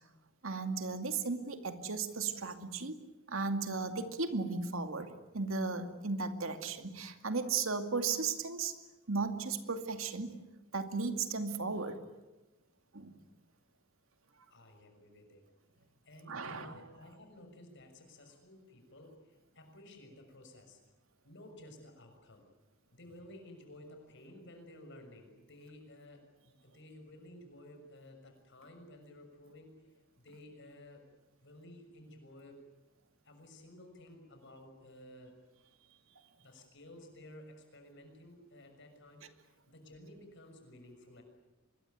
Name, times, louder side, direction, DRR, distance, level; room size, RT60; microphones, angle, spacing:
voice 1, 0.4-3.0 3.3-5.1 5.3-8.8 9.1-10.4 10.7-12.0 12.9-13.2 16.3-16.8, right 4 dB, 90° right, 7 dB, 2.4 m, -35 dB
voice 2, 14.5-15.4 16.0-20.8 21.2-22.5 22.9-31.1 31.4-32.6 33.2-35.4 36.4-41.2, left 1 dB, 65° left, 5 dB, 6.5 m, -54 dB
25.0 x 22.0 x 9.4 m, 1.1 s
head